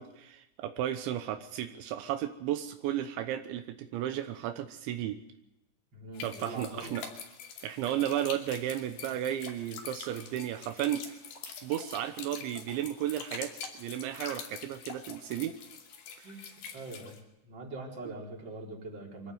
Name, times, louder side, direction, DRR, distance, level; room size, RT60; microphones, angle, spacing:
voice 1, 0.0-5.2 6.2-7.1 7.6-11.2 11.4-15.6 16.2-16.3, right 11 dB, 80° right, 8 dB, 3.3 m, -34 dB
voice 2, 5.9-7.0 16.2-16.4 16.7-17.2 17.4-19.3, right 2 dB, 25° right, -1 dB, 4.4 m, -42 dB
sound 1, 6.1-17.2, left 6 dB, 75° left, 4.8 m, -45 dB
24.5 x 15.0 x 9.3 m, 0.88 s
omnidirectional pair, 5.3 m